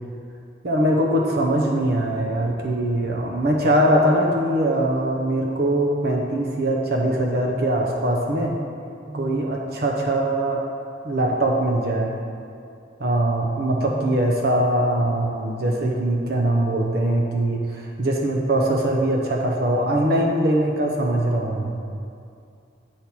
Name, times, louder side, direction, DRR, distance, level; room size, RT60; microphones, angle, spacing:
voice 1, 0.6-8.6 9.1-10.6 11.0-12.1 13.0-21.8, right 1 dB, 55° right, 0 dB, 0.7 m, -22 dB
8.2 x 4.2 x 6.0 m, 2.5 s
head